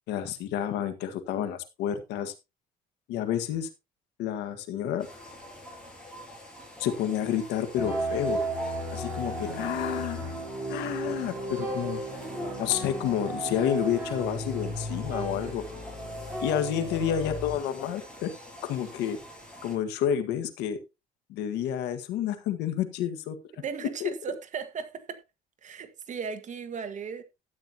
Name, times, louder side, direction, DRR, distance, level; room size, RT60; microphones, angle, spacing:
voice 1, 0.1-2.3 3.1-3.7 4.2-5.1 6.8-8.4 8.9-10.2 10.7-12.0 12.6-15.6 16.4-18.3 18.6-19.2 19.6-20.8 21.3-23.4 24.0-24.1, left 10 dB, 85° left, 1.7 m, -29 dB
sound 1, 5.0-19.8, left 1 dB, 5° left, 6.6 m, -46 dB
sound 2, 7.8-17.6, right 1 dB, 10° right, 5.6 m, -34 dB
voice 2, 23.6-25.2 25.6-27.2, right 6 dB, 45° right, 1.6 m, -36 dB
13.0 x 9.1 x 2.9 m
cardioid pair, 110°, 17 cm